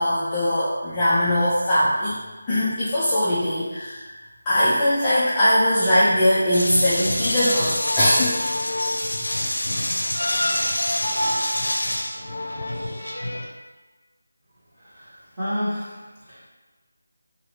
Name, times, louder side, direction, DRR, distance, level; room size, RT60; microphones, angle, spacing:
voice 1, 0.0-2.2 2.5-4.0 4.5-8.3, left 1 dB, 10° left, -12 dB, 0.4 m, -20 dB
sound 1, 6.5-13.5, left 1 dB, 75° left, 0.6 m, -25 dB
voice 2, 14.7-16.5, equal, 15° right, -17 dB, 1.4 m, -31 dB
2.7 x 2.6 x 3.0 m, 1.3 s
figure-of-eight pair, 175°, 0 cm